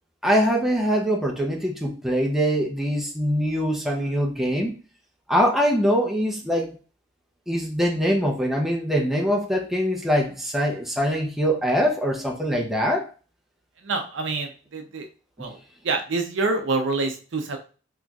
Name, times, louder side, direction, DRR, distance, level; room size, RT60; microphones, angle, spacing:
voice 1, 0.2-4.7 5.3-6.8 7.5-13.1 15.4-15.5, equal, ahead, -1 dB, 0.6 m, -23 dB
voice 2, 13.8-15.1 15.4-15.6 15.8-17.6, right 3 dB, 70° right, 5 dB, 0.6 m, -26 dB
3.9 x 3.0 x 2.4 m, 0.36 s
head